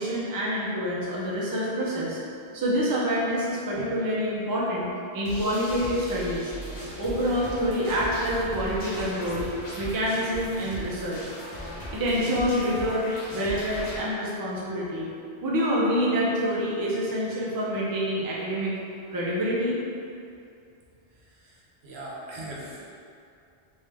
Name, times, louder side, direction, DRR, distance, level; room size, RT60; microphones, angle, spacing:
voice 1, 0.0-2.2 2.5-6.5 7.0-9.5 9.8-11.2 11.9-13.1 13.3-15.1 15.4-18.7 19.1-19.8, equal, 30° right, -6 dB, 0.4 m, -27 dB
sound 1, 5.3-14.0, equal, 45° left, 0.8 m, -38 dB
voice 2, 21.1-22.9, right 1 dB, 75° right, -4 dB, 0.9 m, -41 dB
3.4 x 2.6 x 3.3 m, 2.5 s
omnidirectional pair, 1.1 m